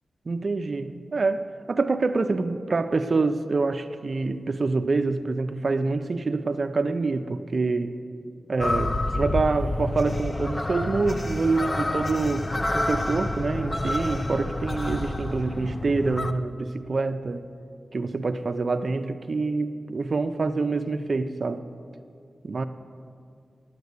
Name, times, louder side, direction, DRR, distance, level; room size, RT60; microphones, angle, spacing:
voice 1, 0.3-8.0 8.5-17.4 17.9-21.6 22.4-22.6, right 3 dB, 50° right, 8 dB, 0.4 m, -26 dB
sound 1, 8.6-16.3, left 2 dB, 20° left, 0.4 m, -28 dB
9.4 x 9.3 x 8.0 m, 2.4 s
wide cardioid pair, 130°, 0 cm